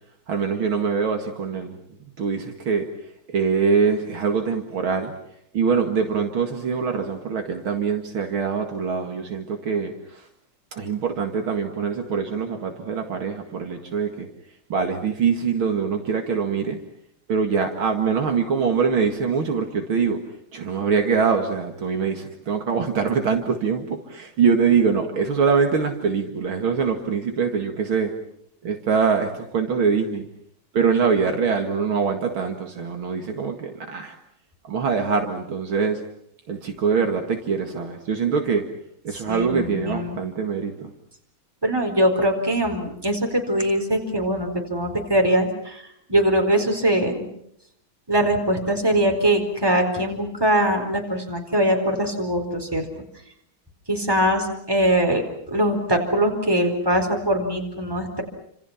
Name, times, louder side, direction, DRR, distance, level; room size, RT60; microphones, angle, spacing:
voice 1, 0.3-1.8 2.2-2.9 3.3-5.1 5.5-10.2 10.7-14.3 14.7-16.8 17.3-20.2 20.5-28.1 28.6-30.3 30.7-34.2 34.6-36.0 36.5-38.7 39.0-40.9, right 5 dB, 70° right, 4 dB, 2.8 m, -23 dB
voice 2, 39.3-40.2 41.6-47.3 48.1-52.9 53.9-55.2 55.5-58.2, right 1 dB, 10° right, 3 dB, 4.4 m, -22 dB
29.5 x 27.0 x 5.8 m, 0.71 s
omnidirectional pair, 2.4 m